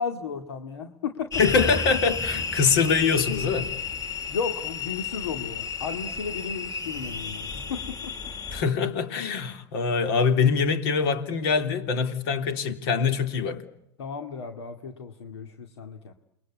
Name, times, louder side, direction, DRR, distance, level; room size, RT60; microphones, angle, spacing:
voice 1, 0.0-1.4 4.3-8.3 14.0-16.1, left 6 dB, 80° left, 2.3 m, -34 dB
sound 1, 1.2-4.6, right 1 dB, 10° left, 3.2 m, -39 dB
sound 2, 1.3-8.6, left 5 dB, 25° left, 2.8 m, -33 dB
voice 2, 1.4-3.7 8.5-13.6, left 5 dB, 65° left, 3.5 m, -24 dB
29.0 x 22.5 x 8.5 m
hypercardioid pair, 105°, 14 cm